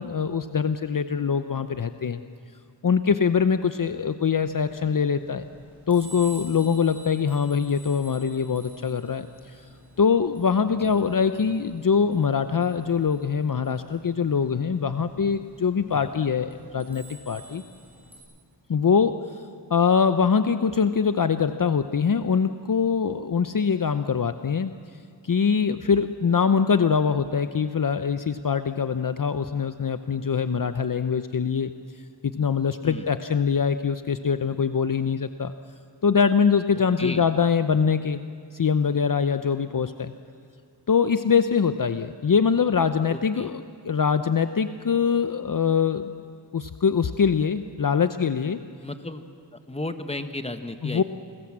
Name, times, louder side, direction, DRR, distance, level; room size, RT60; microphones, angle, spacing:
voice 1, 0.0-2.2 2.8-5.4 5.9-9.6 10.0-17.6 18.7-19.4 19.7-24.7 25.2-31.7 32.2-35.5 36.0-38.2 38.5-40.1 40.9-46.0 46.5-48.6 50.8-51.0, left 6 dB, 50° left, 10 dB, 0.8 m, -23 dB
sound 1, 4.5-18.2, equal, 5° right, 7.9 m, -49 dB
voice 2, 43.1-43.5 48.8-49.2 49.5-51.0, left 2 dB, 15° left, 8 dB, 1.5 m, -34 dB
28.5 x 20.5 x 7.5 m, 2.2 s
wide cardioid pair, 80°, 42 cm